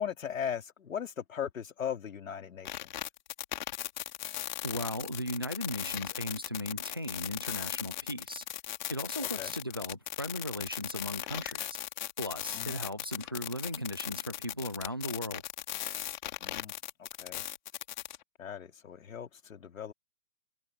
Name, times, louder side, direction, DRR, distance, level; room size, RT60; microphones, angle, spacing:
voice 1, 0.0-2.9 9.3-9.5 12.5-12.8 16.4-16.7 17.0-17.5 18.4-19.9, left 8 dB, 75° left, 4.1 m, -38 dB
sound 1, 2.7-18.2, left 12 dB, 35° left, 2.3 m, -38 dB
voice 2, 4.6-8.4 8.9-11.8 12.2-15.4, left 1 dB, 20° right, 0.4 m, -37 dB
hypercardioid pair, 175°, 41 cm